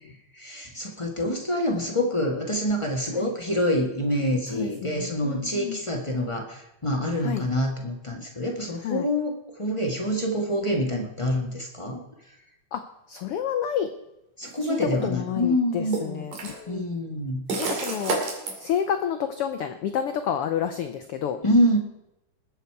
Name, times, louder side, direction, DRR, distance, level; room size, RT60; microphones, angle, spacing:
voice 1, 0.3-12.0 14.4-16.3 16.7-18.0 21.4-21.8, equal, 45° left, 0 dB, 0.4 m, -26 dB
voice 2, 4.5-5.8 7.2-7.4 8.8-9.1 12.7-12.8 13.1-13.9 14.6-17.0 17.6-18.2 18.6-21.4, left 9 dB, 85° left, 8 dB, 1.2 m, -29 dB
sound 1, 14.4-14.6 15.9-16.6 17.5-18.5, right 4 dB, 80° right, 4.0 m, -29 dB
20.5 x 8.2 x 4.7 m, 0.88 s
omnidirectional pair, 3.6 m